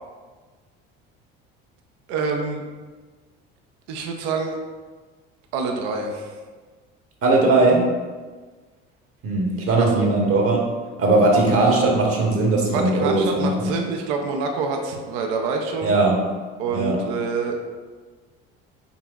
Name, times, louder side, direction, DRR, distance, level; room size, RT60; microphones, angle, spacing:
voice 1, 2.1-2.6 3.9-4.6 5.5-6.4 9.8-9.9 11.3-11.8 12.7-15.9 16.6-17.6, right 4 dB, 75° right, 3 dB, 0.6 m, -26 dB
voice 2, 7.2-7.9 9.2-10.7 11.0-13.7 15.8-16.2 16.7-17.0, right 2 dB, 45° right, 0 dB, 1.0 m, -19 dB
5.4 x 2.9 x 2.3 m, 1.4 s
supercardioid pair, 80°, 31 cm